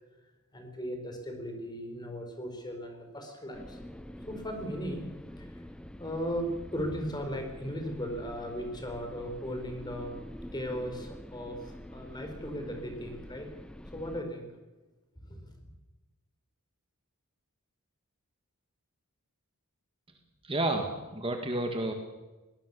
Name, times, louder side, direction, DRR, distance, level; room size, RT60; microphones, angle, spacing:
voice 1, 0.5-5.1 5.4-5.6 6.0-10.2 10.5-13.5 13.9-14.5 15.2-15.7, equal, 20° left, 4 dB, 4.6 m, -37 dB
sound 1, 3.5-14.2, equal, 5° left, 0.6 m, -46 dB
voice 2, 20.4-21.9, right 2 dB, 25° right, 4 dB, 2.0 m, -30 dB
22.5 x 19.0 x 7.0 m, 1.1 s
head